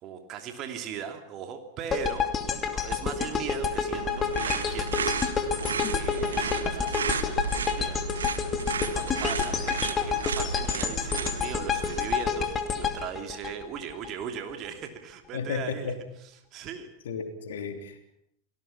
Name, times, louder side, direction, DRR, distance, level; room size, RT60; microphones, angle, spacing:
voice 1, 0.0-8.1 8.7-16.9, right 8 dB, 35° right, 5 dB, 3.0 m, -39 dB
sound 1, 1.9-14.1, left 6 dB, 25° left, 2.6 m, -29 dB
sound 2, 3.9-12.2, right 5 dB, 70° right, 1.7 m, -33 dB
voice 2, 15.3-16.0 17.0-18.1, left 5 dB, 60° left, 5 dB, 3.3 m, -33 dB
30.0 x 19.0 x 5.9 m, 0.75 s
figure-of-eight pair, 90°, 0 cm